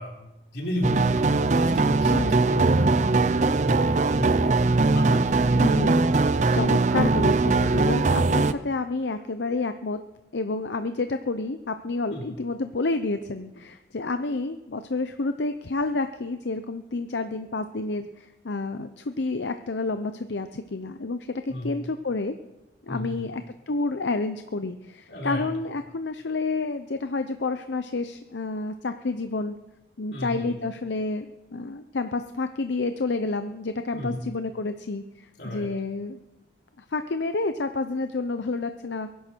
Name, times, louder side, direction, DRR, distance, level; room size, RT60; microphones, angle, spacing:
voice 1, 0.0-2.9 3.4-4.7 4.9-5.7 12.1-12.3 21.5-21.7 22.9-23.3 25.1-25.5 30.1-30.6 33.9-34.2 35.4-35.7, equal, 65° left, -1 dB, 4.2 m, -34 dB
sound 1, 0.8-8.5, right 3 dB, 45° right, 0.6 m, -21 dB
voice 2, 2.1-2.4 5.6-10.0 10.3-22.3 22.8-29.6 30.0-36.2 36.8-39.1, left 3 dB, 85° left, 9 dB, 0.7 m, -29 dB
22.5 x 11.0 x 4.6 m, 0.99 s
head